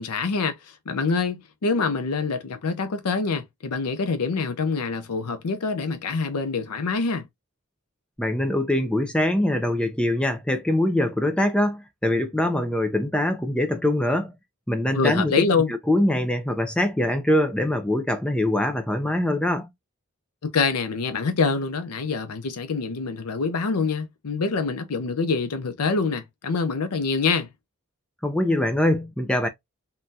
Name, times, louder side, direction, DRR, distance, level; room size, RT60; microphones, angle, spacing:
voice 1, 0.0-7.3 14.9-15.7 20.4-27.5, left 4 dB, 90° left, 0.6 m, -25 dB
voice 2, 8.2-14.3 14.7-15.5 15.9-19.7 28.2-29.5, left 1 dB, 5° left, 0.4 m, -23 dB
3.7 x 2.2 x 2.6 m
head